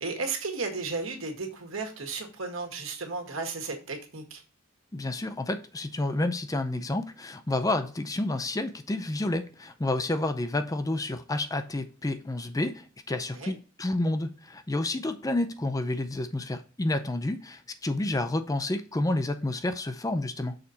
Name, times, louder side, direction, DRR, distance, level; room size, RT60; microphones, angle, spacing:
voice 1, 0.0-4.4 13.3-13.5, right 4 dB, 75° right, 1.8 m, -34 dB
voice 2, 4.9-20.6, left 2 dB, 15° left, 0.5 m, -30 dB
6.5 x 4.1 x 4.2 m
head